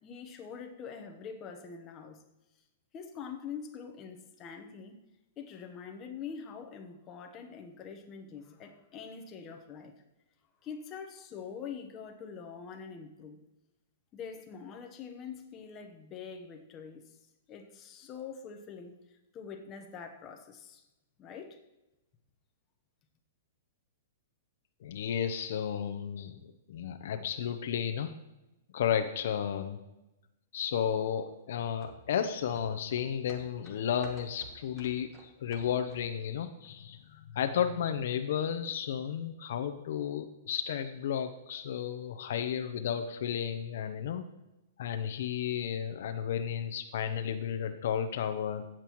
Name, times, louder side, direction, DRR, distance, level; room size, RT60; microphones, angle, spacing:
voice 1, 0.0-2.2 2.9-5.0 5.4-9.9 10.6-13.4 14.1-17.0 17.5-18.9 19.3-20.8 21.2-21.6, left 6 dB, 20° left, 3 dB, 1.0 m, -44 dB
voice 2, 24.8-28.1 28.7-29.8 30.5-44.3 44.8-48.7, left 8 dB, 65° left, 8 dB, 0.7 m, -33 dB
sound 1, 31.8-36.3 36.6-36.7, right 2 dB, 15° right, 1.3 m, -54 dB
15.5 x 7.5 x 3.1 m, 0.98 s
hypercardioid pair, 160°, 0 cm